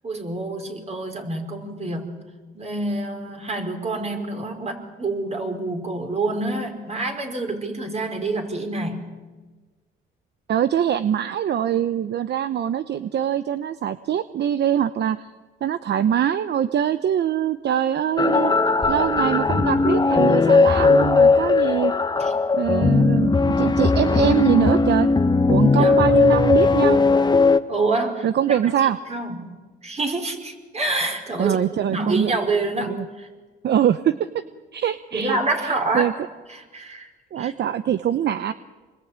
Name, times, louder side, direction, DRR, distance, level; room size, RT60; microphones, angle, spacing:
voice 1, 0.0-2.2 2.5-9.1 22.2-22.3 25.8-26.2 27.7-28.6 29.1-29.5 29.8-31.6 31.9-33.3 35.1-36.1 36.5-37.1 37.4-37.5, right 2 dB, 35° right, 3 dB, 5.0 m, -27 dB
voice 2, 10.5-15.3 15.6-18.5 18.9-21.9 22.5-25.1 25.5-27.0 28.2-29.0 31.4-32.3 32.9-33.0 33.6-34.2 34.7-35.4 35.6-36.1 37.3-38.5, right 10 dB, 60° right, 12 dB, 0.8 m, -23 dB
sound 1, 18.2-27.6, left 4 dB, 20° left, 1.2 m, -18 dB
27.0 x 21.5 x 8.9 m, 1.3 s
cardioid pair, 90°, 20 cm